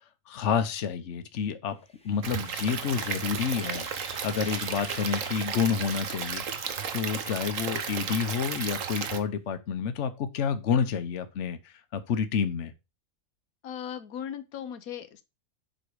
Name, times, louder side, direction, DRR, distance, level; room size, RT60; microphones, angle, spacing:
voice 1, 0.3-1.8 2.0-12.7, left 7 dB, 60° left, 1.2 m, -29 dB
Sawing, 1.8-9.2, equal, 5° left, 1.0 m, -49 dB
Stream / Liquid, 2.2-9.2, right 7 dB, 70° right, 1.4 m, -34 dB
voice 2, 13.6-15.2, left 9 dB, 85° left, 1.3 m, -37 dB
7.9 x 5.5 x 4.8 m
omnidirectional pair, 1.5 m